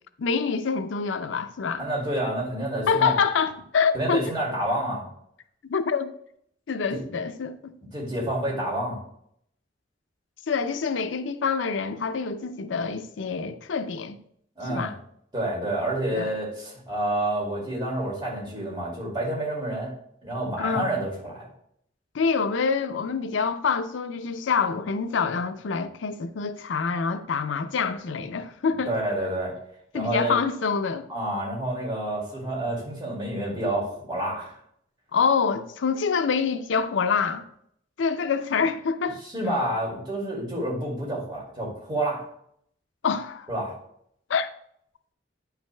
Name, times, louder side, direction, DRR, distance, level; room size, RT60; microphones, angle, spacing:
voice 1, 0.2-1.8 2.9-4.2 5.7-6.1 6.7-7.6 10.5-14.2 14.7-15.0 16.2-16.3 20.6-20.9 22.1-28.9 29.9-31.1 35.1-37.4 38.0-39.2 43.0-43.5 44.3-44.5, left 5 dB, 85° left, 0.5 m, -26 dB
voice 2, 1.8-3.1 3.9-5.0 6.9-7.0 7.9-9.0 14.6-14.9 15.3-19.9 20.2-21.5 28.9-29.5 29.9-30.4 31.1-34.5 39.2-42.2 43.5-43.7, right 1 dB, 25° right, 2.3 m, -29 dB
8.8 x 5.7 x 2.2 m
head